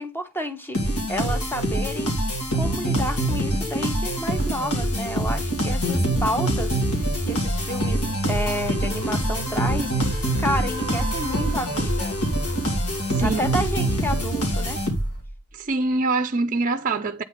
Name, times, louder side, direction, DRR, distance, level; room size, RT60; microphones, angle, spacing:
voice 1, 0.0-2.1 2.5-12.2 13.2-14.8, equal, 10° left, 1.1 m, -30 dB
sound 1, 0.7-15.3, right 1 dB, 85° left, 2.9 m, -25 dB
sound 2, 5.6-15.2, right 3 dB, 70° left, 4.8 m, -36 dB
voice 2, 13.1-13.5 15.5-17.2, right 3 dB, 35° right, 0.5 m, -24 dB
8.6 x 4.3 x 5.1 m
head